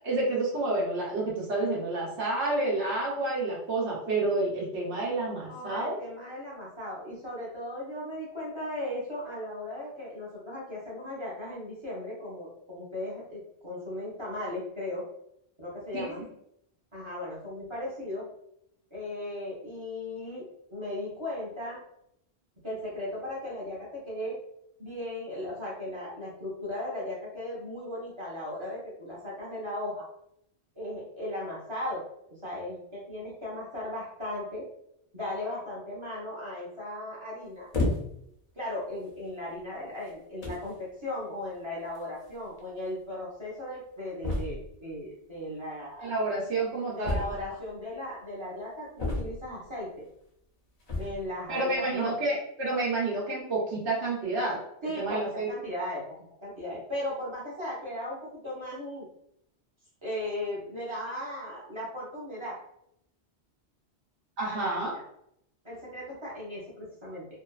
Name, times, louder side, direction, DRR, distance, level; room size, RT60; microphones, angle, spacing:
voice 1, 0.0-6.0 15.9-16.1 46.0-47.2 51.5-54.6 55.0-55.5 64.4-64.9, right 2 dB, 75° right, -4 dB, 1.0 m, -29 dB
voice 2, 5.5-15.0 15.6-16.2 16.9-18.3 18.9-21.8 22.6-24.4 24.8-30.1 30.8-32.0 32.3-34.6 35.1-37.7 38.5-46.2 46.9-50.1 50.9-52.1 54.8-56.0 56.4-59.1 60.0-62.6 64.4-65.0 65.6-67.3, left 1 dB, 30° right, -6 dB, 0.7 m, -37 dB
sound 1, 37.7-38.3 39.1-39.3 40.1-40.2 40.4-40.7 41.9-42.0 42.3-42.4 42.6-42.7 44.2-44.8 47.0-47.7 49.0-49.6 50.8-51.3, left 2 dB, 45° left, 0.5 m, -31 dB
2.6 x 2.2 x 2.3 m, 0.76 s
omnidirectional pair, 1.2 m